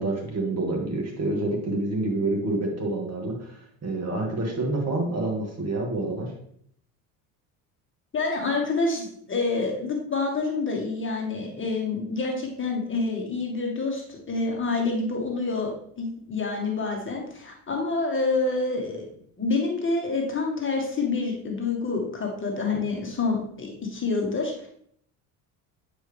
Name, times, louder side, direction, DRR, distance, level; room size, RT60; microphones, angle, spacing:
voice 1, 0.0-6.3, right 2 dB, 40° right, 0 dB, 2.4 m, -28 dB
voice 2, 8.1-15.7 16.0-19.0 19.4-24.7, left 3 dB, 30° left, 0 dB, 2.0 m, -27 dB
8.7 x 5.0 x 3.6 m, 0.66 s
hypercardioid pair, 75°, 41 cm